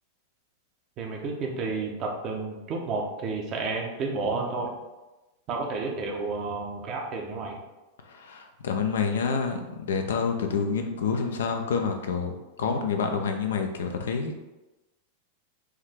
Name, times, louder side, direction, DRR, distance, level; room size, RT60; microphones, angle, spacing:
voice 1, 1.0-4.7 5.5-7.6, right 3 dB, 35° right, 1 dB, 0.8 m, -31 dB
voice 2, 8.1-14.3, left 5 dB, 65° left, 5 dB, 0.5 m, -28 dB
4.7 x 2.7 x 3.4 m, 1.1 s
figure-of-eight pair, 90°, 0 cm